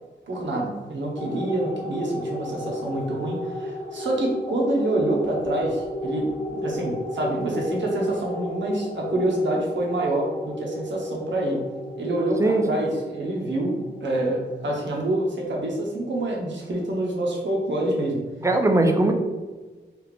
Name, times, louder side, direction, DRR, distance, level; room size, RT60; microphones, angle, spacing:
voice 1, 0.3-11.6 12.0-18.2, right 1 dB, 80° right, -1 dB, 0.8 m, -26 dB
sound 1, 1.2-15.9, left 1 dB, 45° left, 0.5 m, -34 dB
voice 2, 12.4-12.8 18.4-19.1, right 2 dB, 15° right, 3 dB, 0.4 m, -20 dB
3.4 x 2.4 x 3.3 m, 1.3 s
wide cardioid pair, 120°, 19 cm